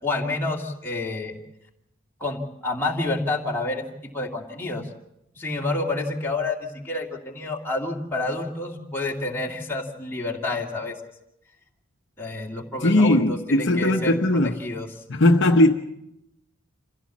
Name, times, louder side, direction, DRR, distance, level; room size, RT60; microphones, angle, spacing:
voice 1, 0.0-1.3 2.2-4.9 5.4-11.0 12.2-14.2 14.6-14.9, left 2 dB, 10° left, 2.5 m, -29 dB
voice 2, 12.8-14.6 15.1-15.7, left 1 dB, 55° left, 0.9 m, -18 dB
26.5 x 15.5 x 7.3 m
head